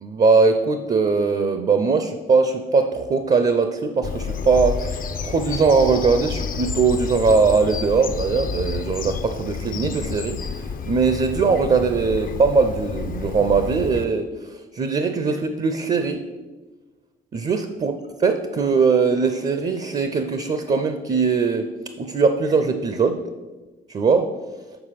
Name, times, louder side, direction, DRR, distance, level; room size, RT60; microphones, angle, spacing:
voice 1, 0.0-5.0 5.2-10.4 10.9-14.3 14.7-16.2 17.3-17.9 18.2-21.7 22.0-23.2 23.9-24.3, right 4 dB, 35° right, 8 dB, 0.5 m, -20 dB
Bird vocalization bird call bird song, 4.0-14.1, left 5 dB, 45° left, 0.5 m, -30 dB
6.8 x 4.4 x 5.7 m, 1.2 s
cardioid pair, 90°, 20 cm